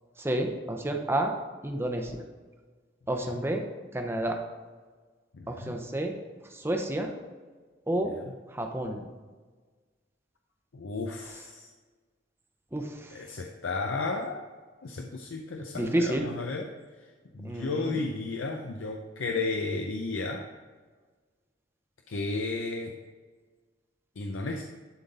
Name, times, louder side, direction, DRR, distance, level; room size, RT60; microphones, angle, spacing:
voice 1, 0.2-1.3 1.6-2.2 3.1-3.6 3.9-4.4 5.5-6.1 6.5-7.1 7.9-8.2 8.5-9.0 12.7-13.1 15.7-16.2 17.4-18.0, right 1 dB, 15° right, 3 dB, 0.7 m, -30 dB
voice 2, 5.3-5.7 10.7-11.7 13.1-14.4 14.8-16.7 17.3-20.4 22.1-22.9 24.2-24.6, left 3 dB, 80° left, 2 dB, 0.6 m, -33 dB
11.0 x 3.8 x 4.0 m, 1.4 s
head